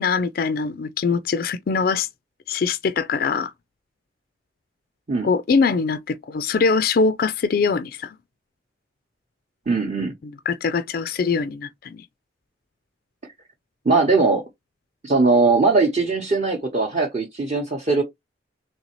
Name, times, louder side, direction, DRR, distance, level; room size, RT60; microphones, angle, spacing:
voice 1, 0.0-2.1 2.5-3.5 5.2-8.2 10.5-12.0, left 5 dB, 50° left, 0.3 m, -22 dB
voice 2, 9.7-10.1 13.8-14.4 15.0-18.0, right 3 dB, 35° right, 0.8 m, -20 dB
4.0 x 3.2 x 3.0 m
head